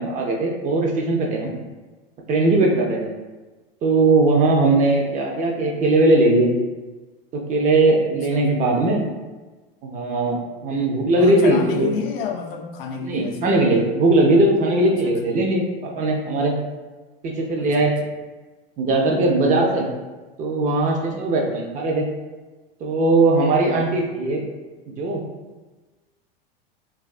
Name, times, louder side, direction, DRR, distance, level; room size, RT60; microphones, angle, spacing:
voice 1, 0.0-1.5 2.3-3.1 3.8-6.5 7.3-9.0 9.8-11.9 13.0-16.5 17.2-17.9 18.8-19.9 20.4-22.1 22.8-24.4 24.9-25.2, right 2 dB, 25° right, 0 dB, 0.4 m, -19 dB
voice 2, 11.1-13.6 14.8-15.2 17.6-17.9, left 6 dB, 75° left, 3 dB, 0.5 m, -30 dB
2.5 x 2.3 x 2.4 m, 1.2 s
hypercardioid pair, 105°, 29 cm